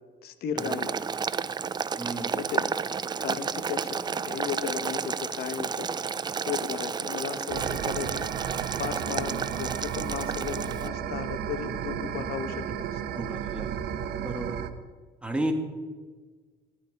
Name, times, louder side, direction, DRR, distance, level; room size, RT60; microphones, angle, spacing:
voice 1, 0.2-1.0 2.3-2.7 3.2-5.9 6.5-8.2 8.8-13.0, left 8 dB, 70° left, 10 dB, 1.3 m, -35 dB
Boiling, 0.6-10.9, right 6 dB, 25° right, 0.5 m, -32 dB
voice 2, 2.0-2.4 13.1-13.7 14.1-14.6 15.2-15.5, right 1 dB, 5° right, 4 dB, 2.0 m, -33 dB
sound 1, 7.5-14.7, right 9 dB, 70° right, 1.0 m, -33 dB
16.0 x 11.5 x 5.3 m, 1.4 s
cardioid pair, 110°, 17 cm